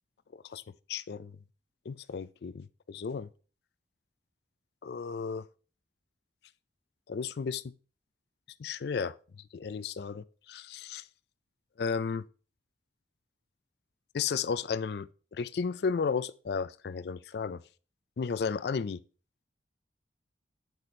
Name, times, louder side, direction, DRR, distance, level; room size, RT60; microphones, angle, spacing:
voice 1, 0.9-1.4 1.9-3.3 4.8-5.4 7.1-7.7 8.6-9.2 9.5-11.0 11.8-12.2 14.1-17.6 18.2-19.0, left 5 dB, 60° left, 0.4 m, -33 dB
8.2 x 4.3 x 4.2 m
head